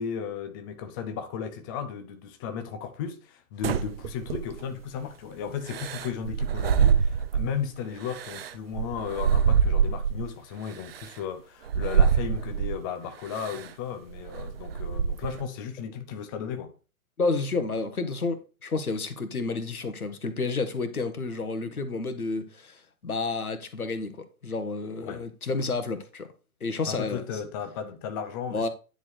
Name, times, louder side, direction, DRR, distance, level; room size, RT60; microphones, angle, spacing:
voice 1, 0.0-16.7 25.0-25.2 26.9-28.7, left 7 dB, 15° left, 0.5 m, -35 dB
sound 1, 3.6-4.8 5.7-7.6 8.0-10.3 10.9-11.1 11.7-12.8 13.4-13.7 14.1-15.4, right 7 dB, 45° right, 0.6 m, -25 dB
voice 2, 17.2-26.3 26.6-27.4 28.5-28.7, left 3 dB, 80° left, 1.6 m, -30 dB
10.0 x 4.5 x 4.6 m
figure-of-eight pair, 125°, 43 cm